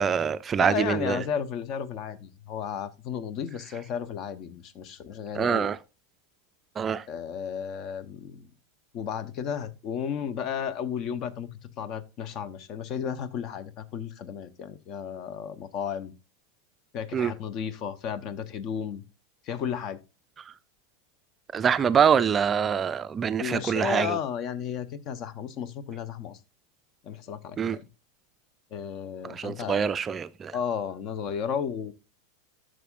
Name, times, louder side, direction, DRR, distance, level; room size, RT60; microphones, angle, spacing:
voice 1, 0.0-1.2 5.4-5.8 6.8-7.0 17.1-17.3 21.5-24.2 27.6-27.8 29.2-30.5, right 7 dB, 25° right, 0.4 m, -25 dB
voice 2, 0.6-5.7 7.1-8.5 8.9-16.1 16.9-19.0 19.4-20.0 23.4-26.4 27.0-27.8 28.7-29.9 30.5-31.9, left 8 dB, 40° left, 0.8 m, -33 dB
12.5 x 6.3 x 2.5 m
figure-of-eight pair, 85°, 0 cm